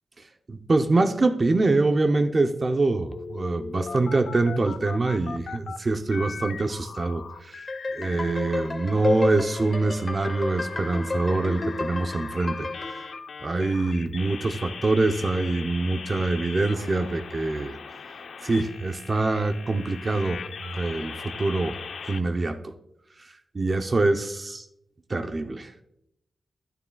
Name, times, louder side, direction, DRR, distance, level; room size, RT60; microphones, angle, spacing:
voice 1, 0.5-7.6 7.9-12.7 13.4-17.8 18.4-21.8 22.0-22.7 23.5-24.7 25.1-25.7, right 2 dB, 35° right, 6 dB, 0.7 m, -25 dB
sound 1, 3.1-5.8 6.1-8.7 9.0-22.2, left 5 dB, 85° left, 0.7 m, -40 dB
sound 2, 7.7-13.2, left 2 dB, 35° left, 0.9 m, -31 dB
13.0 x 12.0 x 2.3 m, 0.81 s
wide cardioid pair, 105°, 0 cm